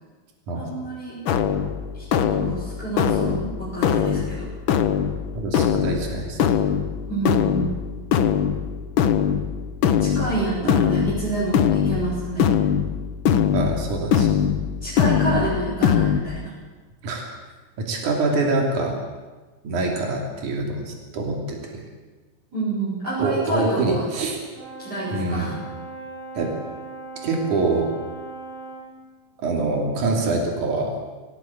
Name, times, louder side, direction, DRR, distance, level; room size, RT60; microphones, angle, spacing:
voice 1, 0.6-1.2 1.9-4.5 7.1-7.7 10.0-12.5 14.8-16.5 22.5-24.0 24.8-25.6, right 2 dB, 30° right, -9 dB, 7.3 m, -28 dB
sound 1, 1.2-16.2, left 8 dB, 85° left, 1.1 m, -22 dB
voice 2, 5.3-6.4 10.6-10.7 13.5-14.4 17.0-17.3 17.9-19.0 19.6-21.8 23.2-24.4 25.1-25.5 26.3-26.5 27.2-27.9 29.4-30.9, right 3 dB, 70° right, 1 dB, 4.4 m, -25 dB
Brass instrument, 24.5-28.9, right 3 dB, 90° right, 6.1 m, -38 dB
20.0 x 18.5 x 8.5 m, 1.3 s
omnidirectional pair, 3.7 m